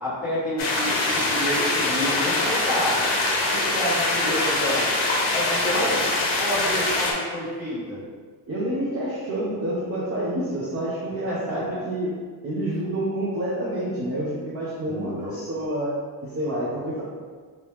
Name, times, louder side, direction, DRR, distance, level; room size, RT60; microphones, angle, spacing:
voice 1, 0.0-3.0 3.5-4.9 5.3-5.9 6.4-8.0 11.3-11.8 14.9-15.3, left 1 dB, 5° right, -12 dB, 1.4 m, -29 dB
sound 1, 0.6-7.1, left 2 dB, 80° left, 0.9 m, -23 dB
voice 2, 5.6-6.1 8.5-12.2 12.4-15.9 16.2-17.0, right 1 dB, 30° right, -8 dB, 0.6 m, -28 dB
3.1 x 2.9 x 3.3 m, 1.5 s
cardioid pair, 155°, 48 cm